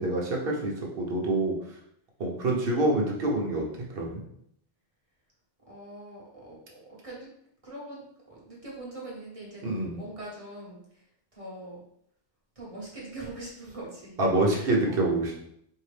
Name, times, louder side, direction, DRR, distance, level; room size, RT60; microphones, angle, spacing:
voice 1, 0.0-1.6 2.2-3.6 3.9-4.2 9.6-10.0 14.2-15.4, right 2 dB, 50° right, -2 dB, 1.1 m, -26 dB
voice 2, 5.7-7.3 7.6-11.0 11.3-11.8 12.5-14.2 14.5-15.2, right 2 dB, 30° right, -5 dB, 1.3 m, -43 dB
4.4 x 2.8 x 3.3 m, 0.71 s
omnidirectional pair, 1.3 m